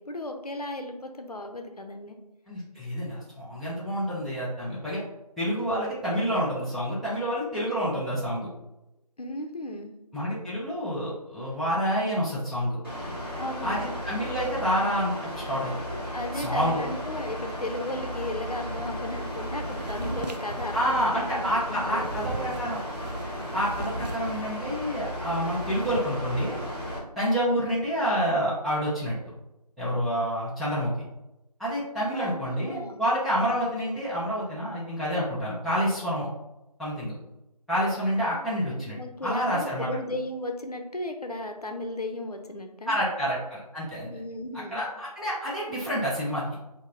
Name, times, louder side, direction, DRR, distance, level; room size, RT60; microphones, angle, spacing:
voice 1, 0.0-2.2 9.2-9.9 13.4-13.8 16.1-22.5 27.5-27.8 32.1-33.0 38.3-38.4 38.8-43.0 44.1-44.8, left 1 dB, 70° left, 5 dB, 0.6 m, -35 dB
voice 2, 2.5-5.0 5.4-8.5 10.1-12.8 13.6-15.8 16.3-16.8 20.7-22.8 23.5-26.5 27.2-29.2 29.8-30.9 31.6-36.3 36.8-37.1 37.7-39.9 42.9-44.1 44.7-46.4, equal, ahead, -11 dB, 0.5 m, -28 dB
Mechanical fan, 12.8-27.0, equal, 35° left, 1.2 m, -35 dB
sound 1, 18.7-24.9 25.2-26.0, right 2 dB, 85° right, 0.5 m, -40 dB
5.9 x 2.0 x 2.6 m, 0.95 s
figure-of-eight pair, 175°, 21 cm